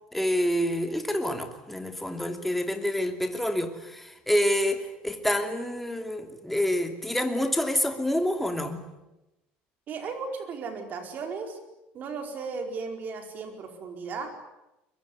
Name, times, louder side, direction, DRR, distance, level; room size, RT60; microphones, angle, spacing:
voice 1, 0.1-8.8, left 1 dB, 5° left, 5 dB, 2.7 m, -27 dB
voice 2, 9.9-11.6 11.9-14.3, right 4 dB, 40° right, 5 dB, 4.8 m, -35 dB
23.0 x 22.5 x 9.8 m, 0.95 s
cardioid pair, 140°, 4 cm